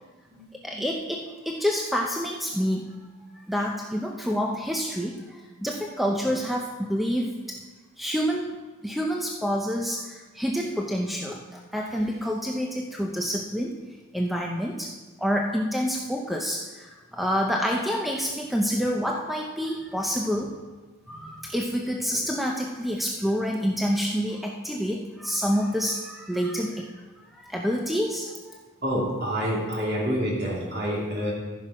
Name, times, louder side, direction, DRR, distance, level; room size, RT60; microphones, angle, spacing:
voice 1, 0.6-2.9 3.5-7.6 8.0-8.5 8.8-13.8 14.1-14.9 15.2-20.5 21.1-26.9 27.3-28.6, equal, ahead, 0 dB, 0.5 m, -28 dB
voice 2, 28.8-31.3, equal, 50° right, -4 dB, 2.9 m, -28 dB
14.5 x 5.9 x 4.9 m, 1.3 s
head